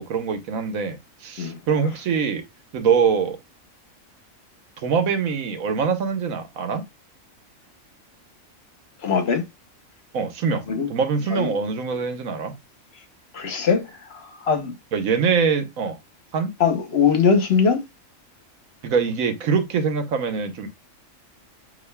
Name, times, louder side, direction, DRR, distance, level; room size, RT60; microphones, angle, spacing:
voice 1, 0.0-2.4 2.7-3.4 4.8-6.8 10.1-12.6 14.9-16.0 16.3-16.5 18.8-20.7, right 6 dB, 85° right, 1.3 m, -23 dB
voice 2, 9.0-9.4 10.7-10.9 11.3-11.5 13.3-13.9 14.5-14.7 16.6-17.8, left 6 dB, 55° left, 1.1 m, -20 dB
8.3 x 2.8 x 2.2 m
omnidirectional pair, 1.4 m